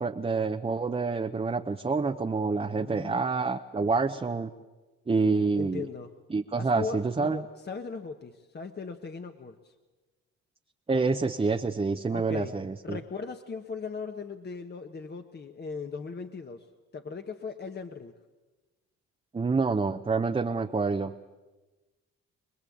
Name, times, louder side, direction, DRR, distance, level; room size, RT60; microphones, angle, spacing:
voice 1, 0.0-4.5 5.1-5.9 6.3-7.4 10.9-13.0 19.3-21.1, right 4 dB, 20° right, 5 dB, 0.9 m, -27 dB
voice 2, 2.7-3.2 5.6-6.1 6.6-9.7 12.1-12.5 12.8-16.7 16.9-18.1, left 5 dB, 35° left, 6 dB, 1.3 m, -38 dB
26.0 x 20.0 x 8.6 m, 1.2 s
cardioid pair, 90°, 30 cm